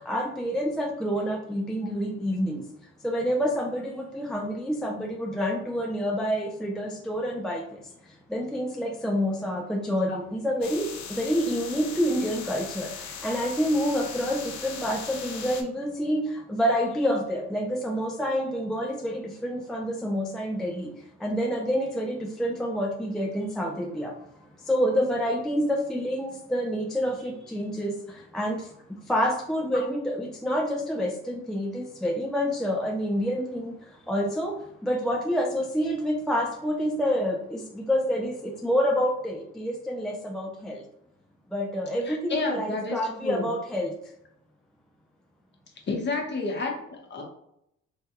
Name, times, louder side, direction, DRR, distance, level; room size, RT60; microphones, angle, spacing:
voice 1, 0.1-2.6 3.0-7.6 8.3-12.9 13.2-20.9 21.2-24.1 24.7-27.9 28.3-28.6 29.1-33.7 34.1-34.5 34.8-40.8 41.5-43.9, equal, ahead, 0 dB, 0.3 m, -28 dB
sound 1, 10.6-15.6, left 6 dB, 65° left, 0.6 m, -39 dB
voice 2, 42.1-43.5 45.9-47.2, left 3 dB, 35° left, 1 dB, 0.9 m, -30 dB
3.3 x 2.2 x 2.9 m, 0.76 s
cardioid pair, 90°, 30 cm